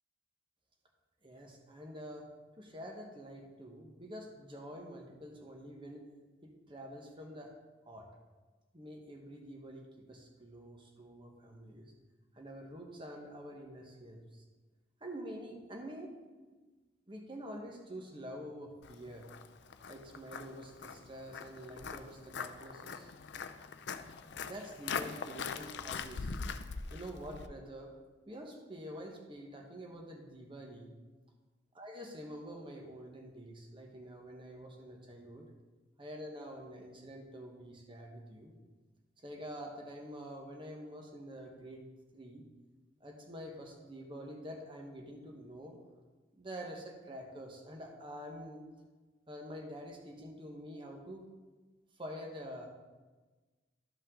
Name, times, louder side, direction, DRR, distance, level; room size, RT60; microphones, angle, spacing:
voice 1, 1.2-2.3 2.6-6.0 6.4-7.5 7.9-8.1 8.7-11.9 12.3-14.4 15.0-16.1 17.1-19.3 19.9-23.1 24.2-26.4 26.9-27.9 28.3-30.9 31.8-35.4 36.0-38.5 39.2-41.9 42.1-42.4 43.0-45.8 46.3-48.6 49.3-51.2 52.0-52.7, equal, 25° right, 1 dB, 1.2 m, -47 dB
Walk footsteps, 18.8-27.5, left 5 dB, 65° left, 0.5 m, -42 dB
13.0 x 5.4 x 3.8 m, 1.3 s
head